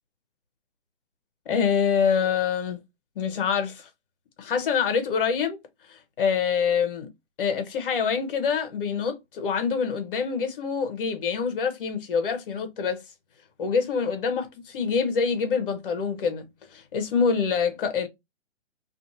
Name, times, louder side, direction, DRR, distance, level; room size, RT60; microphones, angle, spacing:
voice 1, 1.5-2.8 3.2-3.9 4.4-5.6 5.9-7.1 7.4-13.0 13.6-18.1, left 6 dB, 45° left, 0.9 m, -26 dB
2.6 x 2.5 x 2.7 m
hypercardioid pair, 145°, 37 cm